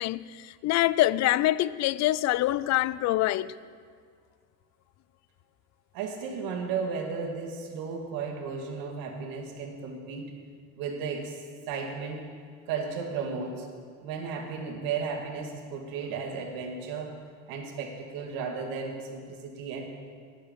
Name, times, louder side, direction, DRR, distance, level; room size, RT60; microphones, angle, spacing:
voice 1, 0.0-3.5, left 15 dB, 50° left, 0.4 m, -25 dB
voice 2, 5.9-10.4 10.8-12.3 12.7-13.7 14.0-17.1 17.5-19.8, right 5 dB, 75° right, 1.9 m, -34 dB
11.5 x 9.9 x 5.2 m
cardioid pair, 105°, 35 cm